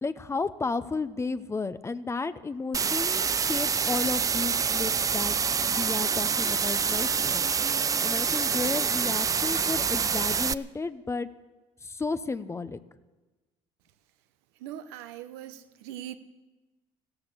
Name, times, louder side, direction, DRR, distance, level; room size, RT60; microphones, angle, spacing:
voice 1, 0.0-5.4 5.7-7.4 8.0-11.3 11.8-12.8, left 4 dB, 20° left, 0.7 m, -33 dB
sound 1, 2.7-10.5, right 6 dB, 25° right, 0.4 m, -26 dB
voice 2, 14.6-16.2, right 11 dB, 90° right, 0.9 m, -41 dB
15.5 x 13.0 x 6.7 m
supercardioid pair, 85°, 13 cm